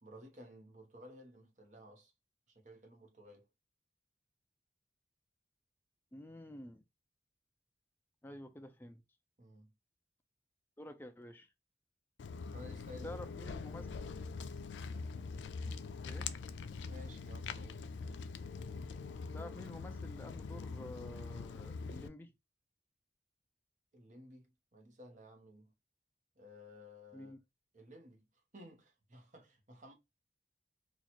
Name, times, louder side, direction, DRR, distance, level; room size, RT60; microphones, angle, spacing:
voice 1, 0.0-2.1 2.5-3.5 9.4-9.7 12.5-13.6 16.8-17.9 23.9-25.7 26.4-27.3 27.7-28.2 28.5-29.9, left 1 dB, 45° right, 0.9 m, -55 dB
voice 2, 6.1-6.8 8.2-9.0 10.8-11.5 13.0-13.9 16.0-16.3 19.3-22.3 27.1-27.4, left 1 dB, 10° left, 0.4 m, -49 dB
Walk footsteps, 12.2-22.1, left 4 dB, 85° left, 0.3 m, -43 dB
2.9 x 2.4 x 4.2 m
head